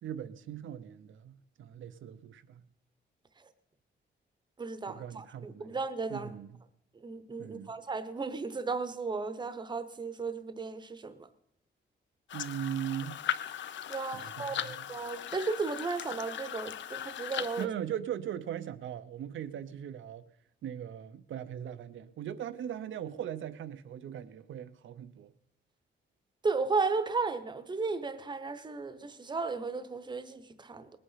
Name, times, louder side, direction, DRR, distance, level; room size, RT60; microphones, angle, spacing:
voice 1, 0.0-2.6 4.9-5.8 6.1-6.6 7.4-7.7 12.3-13.2 14.1-14.9 17.6-20.2 20.6-25.3, right 10 dB, 80° right, 0.7 m, -39 dB
voice 2, 4.6-6.3 7.0-11.3 13.9-17.7 26.4-30.9, right 4 dB, 20° right, 0.8 m, -34 dB
sound 1, 12.3-17.7, left 10 dB, 70° left, 0.6 m, -38 dB
19.5 x 8.6 x 5.6 m
wide cardioid pair, 150°, 20 cm